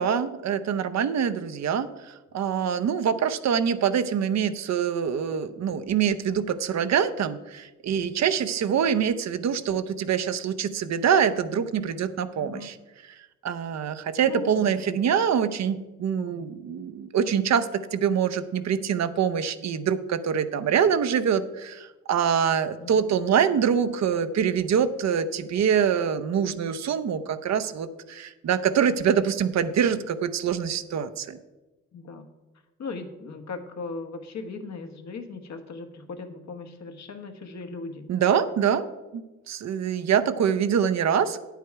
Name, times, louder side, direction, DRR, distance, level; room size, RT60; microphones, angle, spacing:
voice 1, 0.0-12.8 13.4-31.4 38.1-38.8 39.1-41.4, right 8 dB, 55° right, 10 dB, 0.7 m, -25 dB
voice 2, 14.2-14.9 16.1-16.4 22.8-23.0 31.9-32.3 32.8-38.1, left 4 dB, 60° left, 6 dB, 1.3 m, -38 dB
9.3 x 8.2 x 4.6 m, 1.1 s
cardioid pair, 85°, 32 cm